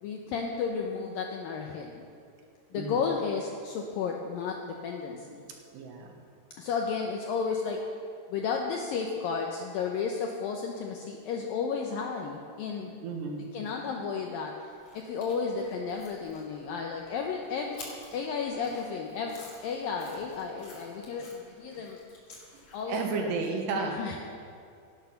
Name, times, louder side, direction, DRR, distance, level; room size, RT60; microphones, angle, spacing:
voice 1, 0.0-2.0 2.7-5.4 6.6-7.8 8.3-13.0 13.5-17.8 18.1-22.0 22.7-23.3 23.7-24.2, left 5 dB, 80° left, 1 dB, 2.1 m, -33 dB
voice 2, 5.7-6.2 13.0-13.5 22.8-24.0, right 4 dB, 75° right, 2 dB, 3.4 m, -32 dB
sound 1, 14.8-23.3, left 3 dB, 45° left, 3.0 m, -51 dB
17.5 x 9.2 x 5.8 m, 2.3 s
omnidirectional pair, 5.1 m